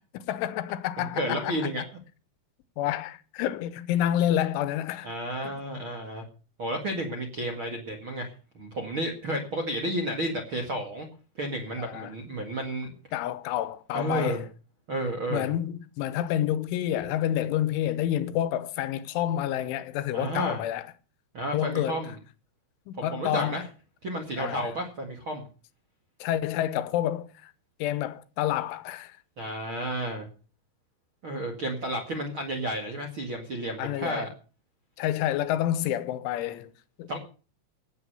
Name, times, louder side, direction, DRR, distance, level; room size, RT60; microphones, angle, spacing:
voice 1, 0.0-1.6 2.8-5.1 11.8-12.1 13.1-14.5 15.3-20.9 21.5-22.0 22.9-23.6 24.4-24.7 26.2-27.5 27.8-29.2 33.8-34.3 35.0-36.7 37.0-37.1, left 12 dB, 80° left, 3.3 m, -29 dB
voice 2, 1.0-1.8 5.0-6.2 6.6-11.1 11.3-12.9 13.9-14.4 14.9-15.5 20.1-20.6 21.3-22.1 23.0-23.6 24.0-25.4 29.4-30.2 31.2-34.3 37.1-37.2, right 1 dB, 45° right, 1.6 m, -32 dB
18.0 x 8.5 x 6.8 m
omnidirectional pair, 5.6 m